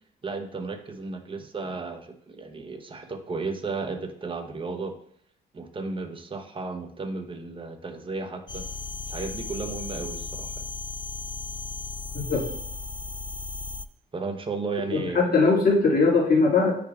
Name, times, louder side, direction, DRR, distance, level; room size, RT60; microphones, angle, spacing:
voice 1, 0.2-4.9 5.5-8.7 9.1-10.7 14.1-15.4, right 4 dB, 25° right, 5 dB, 0.9 m, -34 dB
sound 1, 8.5-13.9, left 4 dB, 25° left, 0.4 m, -35 dB
voice 2, 14.9-16.8, left 4 dB, 50° left, -3 dB, 2.1 m, -20 dB
9.4 x 5.0 x 2.3 m, 0.66 s
cardioid pair, 90°, 20 cm